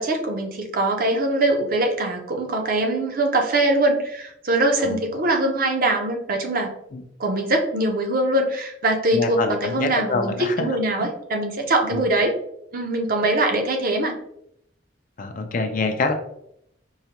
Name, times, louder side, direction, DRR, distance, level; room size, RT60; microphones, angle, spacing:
voice 1, 0.0-6.7 7.2-12.3 12.7-14.1, right 2 dB, 50° right, 3 dB, 0.6 m, -22 dB
voice 2, 9.1-11.1 11.9-12.0 15.2-16.1, left 3 dB, 45° left, 6 dB, 0.4 m, -26 dB
4.7 x 2.1 x 2.9 m, 0.75 s
head